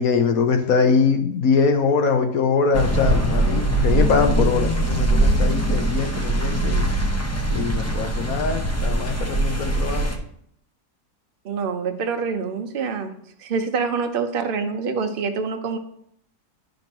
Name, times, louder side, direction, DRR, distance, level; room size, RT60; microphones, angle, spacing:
voice 1, 0.0-6.9 7.5-10.1, left 5 dB, 65° left, 5 dB, 1.1 m, -22 dB
sound 1, 2.7-10.2, right 1 dB, 15° left, 0.5 m, -22 dB
voice 2, 11.4-13.1 13.4-15.8, right 5 dB, 50° right, 6 dB, 0.7 m, -26 dB
11.5 x 5.3 x 2.9 m, 0.69 s
omnidirectional pair, 1.7 m